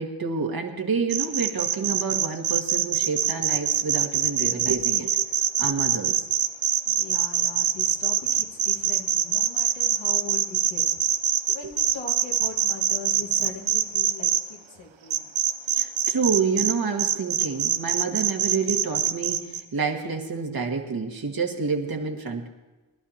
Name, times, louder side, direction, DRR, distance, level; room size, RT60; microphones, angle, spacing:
voice 1, 0.0-5.3 5.6-6.3 15.7-22.5, right 5 dB, 50° right, 2 dB, 1.9 m, -28 dB
sound 1, 1.1-14.4 15.1-16.7 17.0-19.6, right 9 dB, 80° right, 0.9 m, -23 dB
voice 2, 6.9-10.9 11.2-15.3, left 4 dB, 70° left, 0 dB, 2.4 m, -40 dB
22.5 x 12.0 x 2.9 m, 1.2 s
cardioid pair, 75°, 45 cm